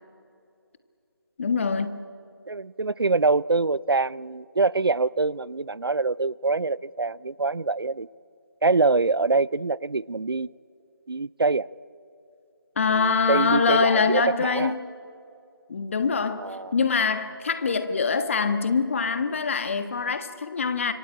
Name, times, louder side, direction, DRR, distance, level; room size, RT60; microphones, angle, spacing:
voice 1, 1.4-2.0 12.8-14.7 15.7-20.9, left 5 dB, 35° left, 1.4 m, -24 dB
voice 2, 2.5-8.1 8.6-10.5 11.1-11.7 12.9-14.7 16.4-16.7, right 3 dB, 80° right, 0.5 m, -24 dB
25.5 x 22.0 x 8.7 m
figure-of-eight pair, 160°, 12 cm